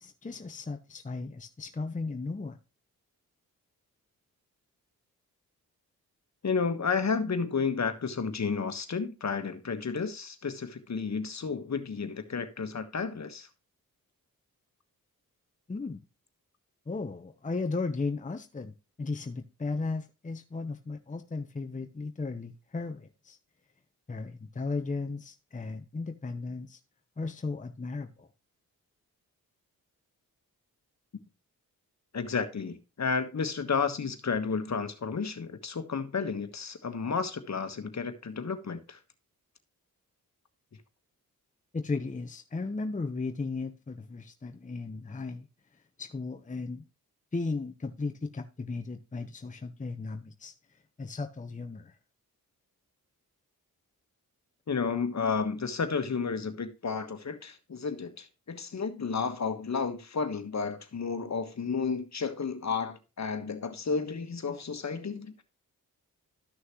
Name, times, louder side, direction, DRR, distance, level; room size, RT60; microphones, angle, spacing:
voice 1, 0.0-2.6 15.7-16.0 16.9-23.4 24.1-26.8 27.2-28.3 41.7-45.5 46.0-46.8 47.3-50.5 51.0-51.9, left 3 dB, 20° left, 0.9 m, -35 dB
voice 2, 6.4-13.5 32.1-39.0 54.7-65.3, left 5 dB, 45° left, 1.4 m, -32 dB
13.0 x 6.3 x 3.1 m
supercardioid pair, 50°, 37 cm